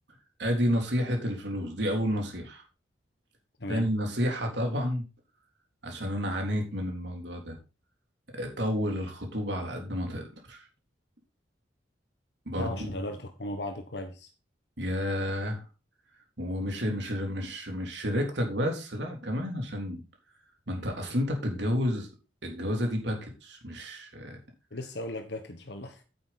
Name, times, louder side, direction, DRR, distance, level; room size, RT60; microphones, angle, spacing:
voice 1, 0.4-2.6 3.7-5.0 5.8-7.6 8.4-10.6 12.5-12.9 14.8-15.6 16.4-20.0 20.7-22.1 22.4-24.4, equal, 75° right, 2 dB, 3.5 m, -30 dB
voice 2, 12.6-14.3 24.7-26.0, left 1 dB, 65° left, 5 dB, 1.4 m, -37 dB
9.4 x 8.7 x 4.2 m, 0.31 s
head